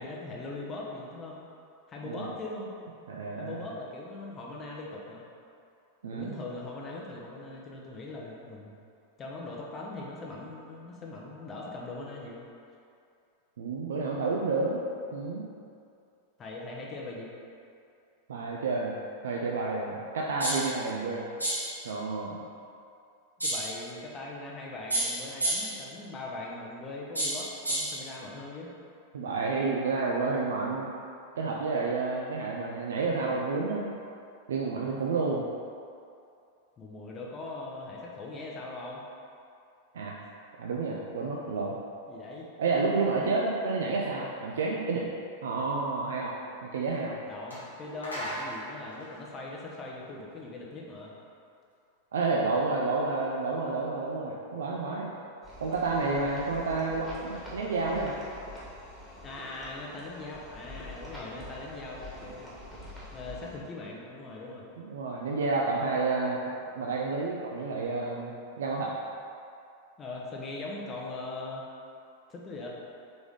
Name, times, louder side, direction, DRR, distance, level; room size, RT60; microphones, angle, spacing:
voice 1, 0.0-1.4 1.9-2.7 3.4-5.3 6.1-8.8 9.2-12.4 16.4-17.3 23.4-28.7 36.8-39.0 40.2-40.3 42.1-42.5 47.3-51.1 55.9-56.4 59.2-62.5 63.1-64.7 70.0-71.6 72.3-72.7, left 2 dB, 25° left, -3 dB, 0.6 m, -40 dB
voice 2, 3.1-3.6 6.0-6.3 13.6-14.8 15.1-15.5 18.3-18.9 19.2-21.2 21.8-22.4 29.1-30.9 31.4-33.9 34.5-35.5 39.9-40.2 40.6-41.8 42.6-45.0 45.4-46.3 46.6-47.2 52.1-55.1 55.6-58.1 64.8-66.4 66.8-68.3 68.6-68.9, right 3 dB, 65° right, -2 dB, 0.4 m, -30 dB
sound 1, 20.4-20.8 21.4-21.8 23.4-23.8 24.9-25.8 27.2-28.0, right 1 dB, 85° right, 0.8 m, -30 dB
sound 2, 46.9-47.0 47.5-50.3, right 1 dB, 80° left, 1.0 m, -40 dB
sound 3, 55.4-63.6, left 1 dB, 5° left, 1.3 m, -45 dB
4.0 x 3.5 x 3.6 m, 2.5 s
figure-of-eight pair, 90°, 0 cm